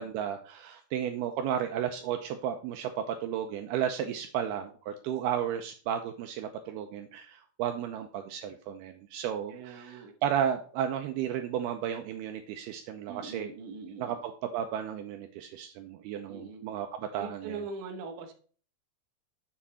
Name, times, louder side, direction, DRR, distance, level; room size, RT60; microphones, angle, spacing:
voice 1, 0.0-13.5 14.0-17.6, right 9 dB, 80° right, 5 dB, 2.5 m, -33 dB
voice 2, 9.5-10.1 13.1-14.2 16.3-16.6 17.1-18.3, right 4 dB, 60° right, 3 dB, 2.5 m, -41 dB
9.7 x 7.4 x 4.2 m, 0.42 s
omnidirectional pair, 5.0 m